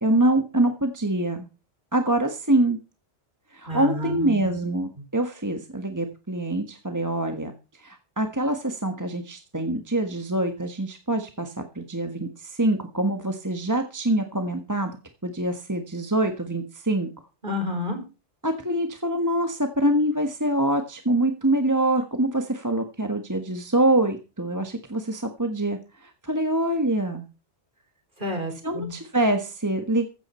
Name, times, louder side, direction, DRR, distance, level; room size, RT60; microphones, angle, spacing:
voice 1, 0.0-1.5 1.9-2.8 3.5-14.9 15.2-17.1 18.4-27.2 28.6-30.2, right 1 dB, 15° right, 6 dB, 1.5 m, -25 dB
voice 2, 3.7-4.6 17.4-18.0 28.2-28.9, left 1 dB, 40° right, 4 dB, 5.4 m, -30 dB
15.5 x 13.0 x 4.4 m, 0.32 s
omnidirectional pair, 1.2 m